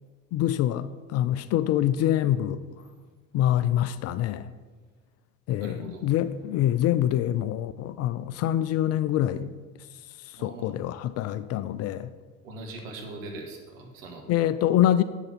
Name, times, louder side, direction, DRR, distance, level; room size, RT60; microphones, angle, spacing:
voice 1, 0.3-2.6 3.3-4.5 5.5-9.5 10.2-12.1 14.3-15.0, left 12 dB, 40° left, 0.4 m, -25 dB
voice 2, 5.6-6.1 10.3-10.8 12.4-14.3, right 2 dB, 70° right, 1.8 m, -41 dB
7.9 x 6.4 x 5.8 m
figure-of-eight pair, 65°, 41 cm